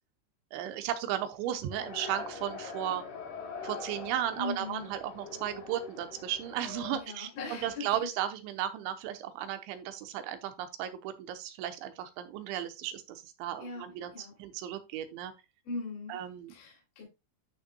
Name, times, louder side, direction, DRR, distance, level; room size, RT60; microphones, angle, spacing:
voice 1, 0.5-3.0 3.6-15.3 16.1-16.5, right 11 dB, 80° right, 9 dB, 3.2 m, -35 dB
sound 1, 1.7-7.0, left 4 dB, 65° left, 3.6 m, -43 dB
voice 2, 4.3-4.9 6.9-7.9 13.6-13.9 14.1-14.3 15.6-16.2 16.5-17.0, left 3 dB, 50° left, -3 dB, 4.3 m, -39 dB
12.0 x 5.7 x 2.3 m, 0.25 s
omnidirectional pair, 5.4 m